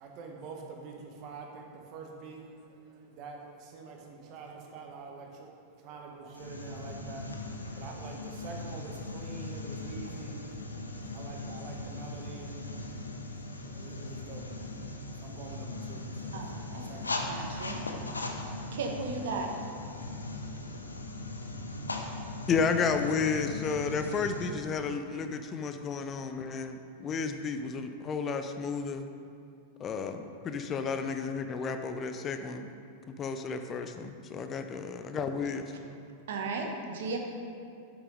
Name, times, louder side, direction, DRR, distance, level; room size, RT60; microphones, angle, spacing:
voice 1, 0.0-17.6, right 4 dB, 40° right, 1 dB, 1.4 m, -47 dB
sound 1, 6.3-24.5, left 2 dB, 80° left, 0.8 m, -39 dB
voice 2, 16.3-16.9 17.3-17.8 18.7-19.5 36.3-37.2, right 4 dB, 60° right, 2 dB, 1.1 m, -35 dB
voice 3, 22.5-29.0 29.8-32.7 33.2-33.9 34.3-35.7, left 5 dB, 25° left, 7 dB, 0.5 m, -32 dB
8.3 x 6.0 x 5.1 m, 2.5 s
figure-of-eight pair, 90°, 0 cm